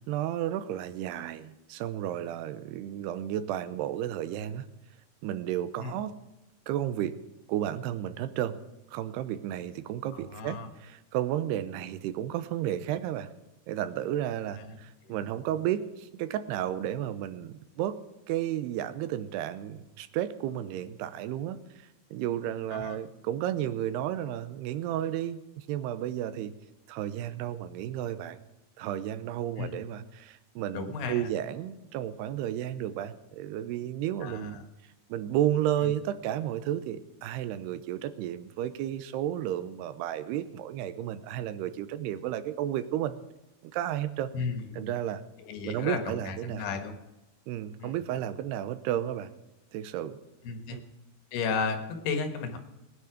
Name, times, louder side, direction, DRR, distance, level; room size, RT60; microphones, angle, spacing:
voice 1, 0.1-4.7 5.2-6.2 6.7-7.2 7.5-8.6 8.9-13.3 13.7-18.0 18.3-26.5 26.9-28.4 28.8-34.6 35.1-43.2 43.6-44.3 44.7-45.2 45.6-46.7 47.5-49.3 49.7-50.2 50.7-50.8, right 11 dB, 85° right, 13 dB, 2.8 m, -32 dB
voice 2, 10.1-10.7 14.5-15.2 22.7-23.0 29.6-29.7 30.7-31.3 34.2-34.6 35.8-35.9 44.3-44.9 45.4-47.0 47.8-48.0 50.4-50.8 51.3-52.6, left 5 dB, 80° left, 6 dB, 3.5 m, -34 dB
19.0 x 9.6 x 5.0 m, 0.98 s
omnidirectional pair, 4.7 m